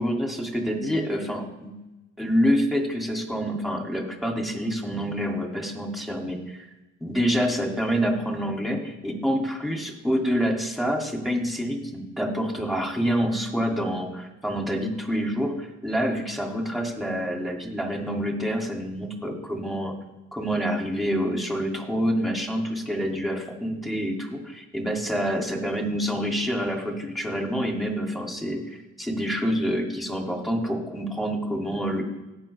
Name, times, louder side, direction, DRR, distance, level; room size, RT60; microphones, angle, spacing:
voice 1, 0.0-1.8 2.2-6.6 7.0-19.9 20.3-28.6 29.0-32.0, equal, ahead, 1 dB, 2.5 m, -27 dB
18.0 x 6.1 x 3.4 m, 1.0 s
cardioid pair, 90°, 30 cm